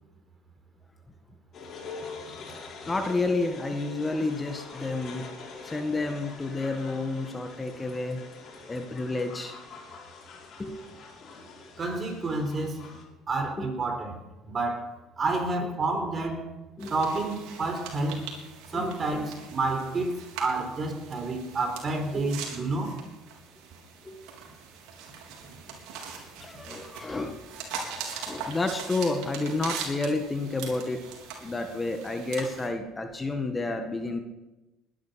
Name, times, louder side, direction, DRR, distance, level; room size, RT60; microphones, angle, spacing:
sound 1, 1.5-13.0, left 4 dB, 50° left, 5.3 m, -44 dB
voice 1, 2.9-5.3 5.6-8.2 8.7-9.6 10.6-11.0 13.6-13.7 16.8-16.9 18.7-18.9 22.1-22.3 24.0-24.2 26.4-27.4 28.1-31.1 31.4-34.2, left 3 dB, 20° left, 6 dB, 1.8 m, -30 dB
voice 2, 11.8-12.9 13.3-14.2 14.4-16.5 16.9-18.2 18.7-22.9, right 2 dB, 35° right, 5 dB, 4.3 m, -29 dB
sound 2, 16.8-32.7, right 6 dB, 75° right, 3.7 m, -41 dB
20.5 x 11.0 x 5.9 m, 1.0 s
supercardioid pair, 85°, 0 cm